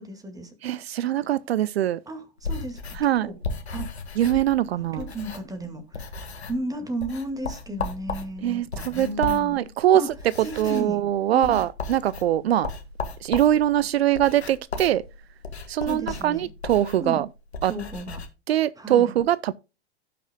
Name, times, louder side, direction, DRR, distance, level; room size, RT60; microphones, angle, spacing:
voice 1, 0.0-0.5 2.1-3.4 3.7-3.9 4.8-9.7 9.9-10.1 10.4-11.0 11.3-11.6 15.8-16.5 17.0-17.2 17.7-18.2 18.8-19.1, right 1 dB, 10° right, 2.1 m, -34 dB
voice 2, 0.6-2.0 3.0-3.3 4.2-5.1 8.4-10.0 10.6-12.7 13.2-15.0 15.7-17.3 17.6-17.7 18.5-19.5, right 12 dB, 75° right, 0.5 m, -22 dB
sound 1, 2.4-5.6 5.9-6.7 7.0-18.3, left 3 dB, 85° left, 1.8 m, -36 dB
16.5 x 5.9 x 2.3 m
hypercardioid pair, 100°, 32 cm